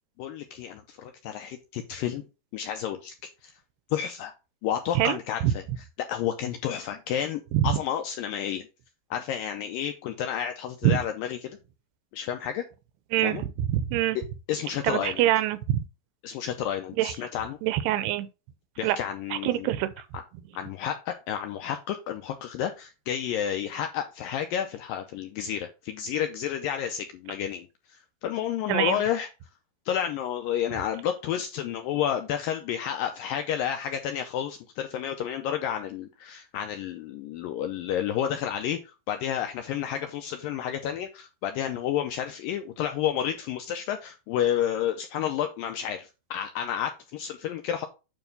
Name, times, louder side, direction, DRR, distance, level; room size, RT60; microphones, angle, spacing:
voice 1, 0.2-2.2 2.5-3.1 3.4-3.5 3.9-4.3 4.6-8.7 9.1-11.6 12.1-12.6 13.2-13.4 14.2-14.3 14.5-15.3 16.2-17.6 18.8-19.7 20.1-20.2 20.5-29.3 29.9-47.9, left 9 dB, 85° left, 2.0 m, -31 dB
voice 2, 13.1-14.2 14.8-15.8 17.0-17.1 17.6-18.3 18.8-19.0 19.3-19.9 28.7-29.0, right 13 dB, 90° right, 2.7 m, -24 dB
9.2 x 3.4 x 5.2 m
omnidirectional pair, 4.7 m